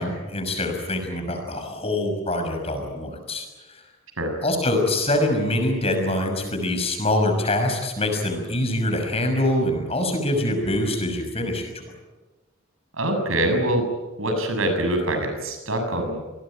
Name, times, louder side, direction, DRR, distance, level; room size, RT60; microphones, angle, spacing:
voice 1, 0.0-3.8 4.4-11.7, left 1 dB, 30° left, 4 dB, 6.0 m, -24 dB
voice 2, 12.9-13.9 14.2-16.2, right 1 dB, 80° right, 6 dB, 7.0 m, -24 dB
27.5 x 20.0 x 9.0 m, 1.2 s
head